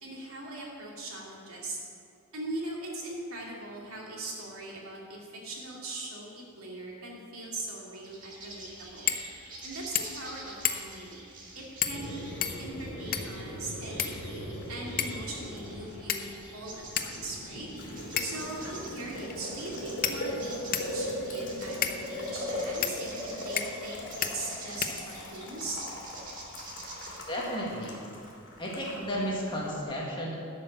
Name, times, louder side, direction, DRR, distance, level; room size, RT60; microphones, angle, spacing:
voice 1, 0.0-1.8 2.3-9.1 9.6-11.2 11.5-12.1 12.6-16.2 16.5-17.7 18.2-25.8, right 2 dB, 85° right, -3 dB, 2.7 m, -40 dB
sound 1, 7.9-27.2, right 2 dB, 40° right, 2.0 m, -47 dB
sound 2, 9.1-9.3 9.6-9.7 9.9-10.3 10.6-11.0 11.8-12.1 12.4-13.4 14.0-14.6 15.0-15.3 16.1-16.5 17.0-17.1 18.2-18.5 19.3-19.4 20.0-21.0 21.8-22.0 22.8-23.0 23.6-23.9 24.2-24.3 24.8-25.4, left 8 dB, 40° left, 0.7 m, -32 dB
Boiling, 11.9-29.8, left 1 dB, 60° left, 2.8 m, -39 dB
voice 2, 27.3-28.0 28.6-30.3, equal, 25° left, -4 dB, 1.9 m, -33 dB
12.0 x 5.9 x 7.4 m, 2.5 s
head